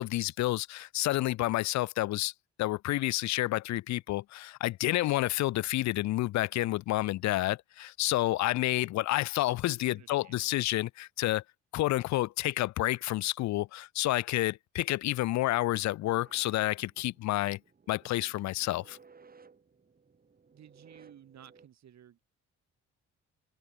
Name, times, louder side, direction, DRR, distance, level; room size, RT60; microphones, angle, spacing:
voice 1, 0.0-2.3 2.6-11.4 11.7-17.6 17.9-19.0, left 16 dB, 65° left, 0.5 m, -29 dB
voice 2, 9.7-10.6 20.5-22.2, right 10 dB, 65° right, 4.6 m, -55 dB
sound 1, 16.0-21.7, right 5 dB, 30° right, 2.2 m, -59 dB
cardioid pair, 90°, 30 cm